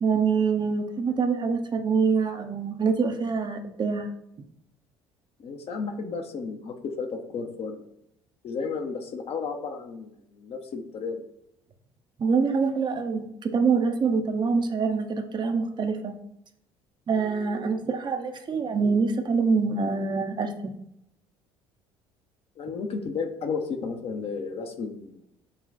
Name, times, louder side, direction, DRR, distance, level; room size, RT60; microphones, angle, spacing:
voice 1, 0.0-4.1 12.2-16.1 17.1-20.7, right 5 dB, 35° right, 6 dB, 0.7 m, -25 dB
voice 2, 5.4-7.9 8.4-11.2 22.6-25.2, left 5 dB, 50° left, 4 dB, 0.8 m, -33 dB
5.5 x 2.3 x 3.9 m, 0.78 s
hypercardioid pair, 60°, 13 cm